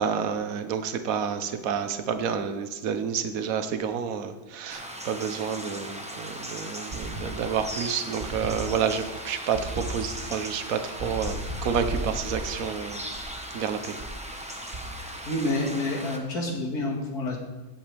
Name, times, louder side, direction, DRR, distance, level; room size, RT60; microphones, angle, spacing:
voice 1, 0.0-13.0 13.5-14.0, right 7 dB, 55° right, 8 dB, 1.2 m, -29 dB
sound 1, 4.7-16.2, right 1 dB, 5° right, 0.9 m, -38 dB
Plywood Bass hits - Echo, 6.9-7.8 8.2-9.1 9.5-10.3 11.0-13.5 14.0-14.3 14.7-15.3, right 1 dB, 30° right, 0.6 m, -36 dB
voice 2, 15.3-17.4, left 2 dB, 55° left, 0 dB, 2.5 m, -28 dB
16.0 x 8.5 x 3.4 m, 1.2 s
omnidirectional pair, 2.0 m